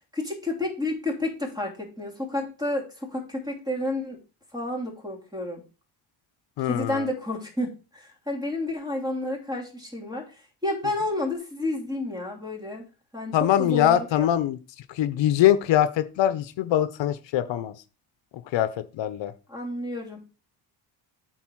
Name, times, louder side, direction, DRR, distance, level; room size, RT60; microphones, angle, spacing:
voice 1, 0.1-4.2 4.5-5.6 6.6-10.3 10.6-12.9 13.1-14.3 19.5-20.3, left 2 dB, 10° right, 1 dB, 2.9 m, -30 dB
voice 2, 6.6-7.0 13.3-14.6 14.9-17.7 18.5-19.3, left 11 dB, 75° left, 12 dB, 0.8 m, -23 dB
8.4 x 4.1 x 6.2 m, 0.34 s
cardioid pair, 130°, 44 cm